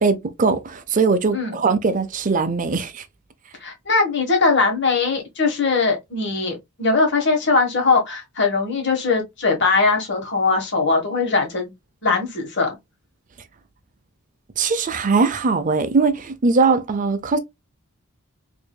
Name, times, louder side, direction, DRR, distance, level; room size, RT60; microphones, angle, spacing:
voice 1, 0.0-3.0 14.6-17.4, right 4 dB, 35° right, 0.5 m, -20 dB
voice 2, 3.6-11.7 12.0-12.8, left 4 dB, 55° left, 1.3 m, -20 dB
4.8 x 2.6 x 2.2 m
head